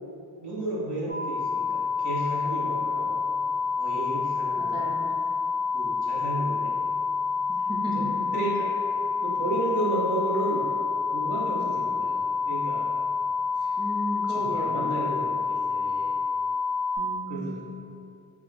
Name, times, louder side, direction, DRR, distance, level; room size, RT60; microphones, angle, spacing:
voice 1, 0.4-3.2 3.8-4.9 5.7-6.8 7.9-10.7 11.1-12.2 12.4-12.9 13.6-13.7 14.3-16.1 17.3-17.6, right 2 dB, 70° right, -5 dB, 0.9 m, -33 dB
sound 1, 1.1-17.0, left 5 dB, 40° right, 1.0 m, -28 dB
voice 2, 4.6-5.1 7.7-8.4 11.5-11.7 13.8-14.9 17.0-17.7, equal, 10° right, -2 dB, 0.3 m, -34 dB
4.7 x 2.9 x 2.6 m, 2.4 s
wide cardioid pair, 170°, 42 cm